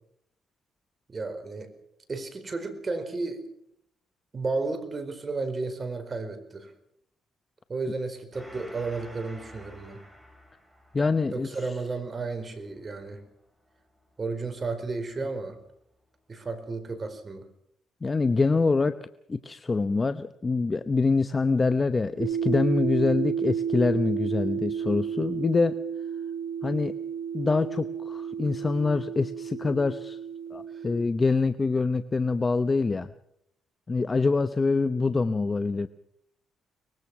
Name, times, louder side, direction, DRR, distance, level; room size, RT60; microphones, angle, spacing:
voice 1, 1.1-1.7 2.1-3.5 4.3-6.7 7.7-10.0 11.3-13.2 14.2-15.6 16.3-17.5 30.7-30.8, right 3 dB, 35° right, 9 dB, 4.5 m, -33 dB
Gong, 8.3-15.3, equal, 10° right, 6.3 m, -52 dB
voice 2, 10.9-11.5 18.0-18.9 19.3-25.7 26.6-26.9 27.3-30.2 30.5-33.1 33.9-35.9, left 3 dB, 25° left, 11 dB, 0.8 m, -25 dB
sound 1, 22.2-31.0, right 7 dB, 70° right, 5.1 m, -32 dB
24.0 x 20.5 x 6.1 m, 0.73 s
cardioid pair, 90°, 0 cm